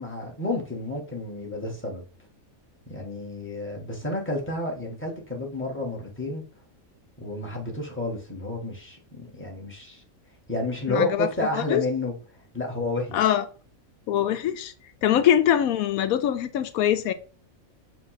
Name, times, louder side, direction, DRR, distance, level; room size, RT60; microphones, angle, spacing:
voice 1, 0.0-2.0 2.9-6.4 7.2-10.0 10.5-12.1 12.5-13.2 15.1-15.2, left 2 dB, 10° left, 1.6 m, -30 dB
voice 2, 10.9-11.3 11.5-11.8 13.1-13.4 14.1-14.7 15.0-17.1, left 10 dB, 85° left, 1.1 m, -23 dB
7.6 x 2.7 x 5.8 m
omnidirectional pair, 1.5 m